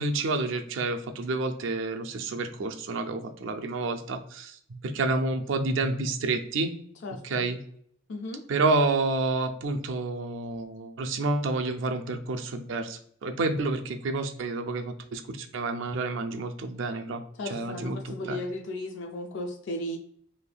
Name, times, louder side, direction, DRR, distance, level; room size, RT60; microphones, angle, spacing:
voice 1, 0.0-6.7 7.2-7.6 8.5-17.2 17.5-18.4, right 3 dB, 80° right, 6 dB, 0.4 m, -29 dB
voice 2, 7.0-7.5 8.1-8.5 17.4-20.0, left 1 dB, 65° left, 2 dB, 0.4 m, -35 dB
3.3 x 2.6 x 2.2 m, 0.63 s
head